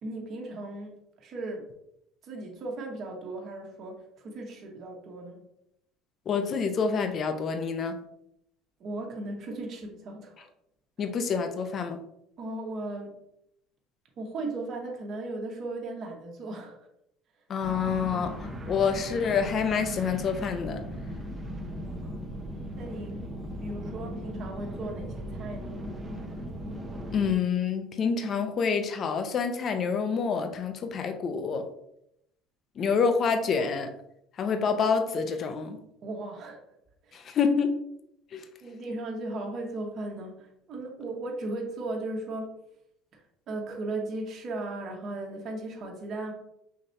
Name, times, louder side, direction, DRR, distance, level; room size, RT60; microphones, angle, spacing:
voice 1, 0.0-1.7 2.2-5.4 8.8-10.5 12.4-13.2 14.2-16.8 21.7-22.1 22.8-23.3 23.6-25.8 36.0-36.6 37.0-37.3 38.6-42.5 43.1-46.3, right 2 dB, 50° right, 0 dB, 1.3 m, -37 dB
voice 2, 6.3-8.0 11.0-12.0 17.5-20.8 27.1-31.6 32.8-33.9 34.4-35.8 37.1-37.8 38.3-38.4, left 5 dB, 45° left, 7 dB, 0.7 m, -27 dB
sound 1, 17.6-27.3, equal, 20° right, 0.9 m, -37 dB
5.8 x 3.1 x 2.7 m, 0.77 s
supercardioid pair, 95°, 0 cm